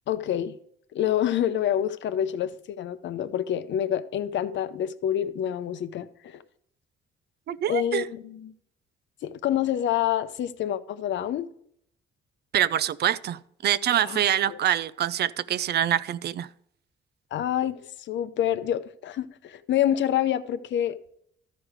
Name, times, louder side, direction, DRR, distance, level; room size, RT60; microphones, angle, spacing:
voice 1, 0.1-0.6 0.9-6.4 7.7-8.5 9.2-11.5 14.0-14.6 17.3-17.8 18.1-21.0, left 10 dB, 65° left, 0.6 m, -27 dB
voice 2, 7.5-8.1 12.5-16.5, right 10 dB, 55° right, 0.4 m, -25 dB
13.0 x 4.9 x 4.9 m
cardioid pair, 90°, 20 cm